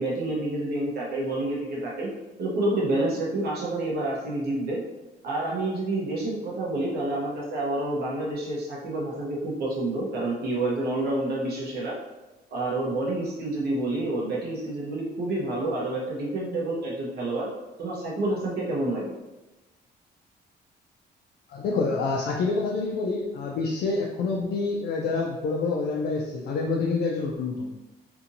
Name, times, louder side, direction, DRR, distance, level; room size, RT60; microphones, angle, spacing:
voice 1, 0.0-2.1 2.4-4.8 5.2-12.0 12.5-17.5 17.8-19.1, right 2 dB, 60° right, -4 dB, 0.9 m, -28 dB
voice 2, 21.5-27.7, left 3 dB, 60° left, 0 dB, 0.4 m, -27 dB
2.7 x 2.5 x 2.6 m, 1.1 s
cardioid pair, 145°, 18 cm